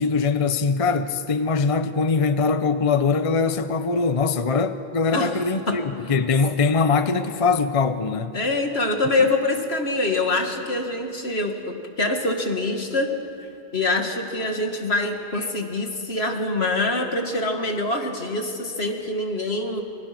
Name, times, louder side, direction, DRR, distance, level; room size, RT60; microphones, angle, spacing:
voice 1, 0.0-8.4 9.2-9.3, left 4 dB, 35° left, 10 dB, 0.8 m, -22 dB
voice 2, 8.3-13.1 13.7-19.8, left 2 dB, 75° left, 4 dB, 2.4 m, -25 dB
28.0 x 25.0 x 6.1 m, 2.7 s
omnidirectional pair, 1.1 m